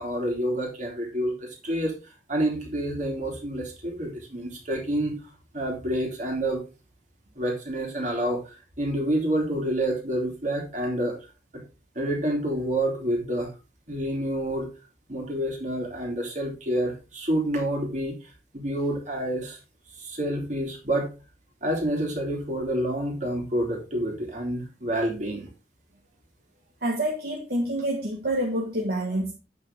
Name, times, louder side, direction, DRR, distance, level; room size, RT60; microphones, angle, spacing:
voice 1, 0.0-1.9 2.3-5.1 5.5-6.6 7.4-11.2 11.5-11.6 11.9-13.5 13.9-14.7 15.1-18.1 18.5-19.6 20.0-21.1 21.6-25.5, right 1 dB, 45° right, 0 dB, 3.0 m, -28 dB
voice 2, 26.8-29.3, right 1 dB, 60° right, -2 dB, 1.6 m, -27 dB
8.6 x 6.7 x 3.6 m, 0.30 s
head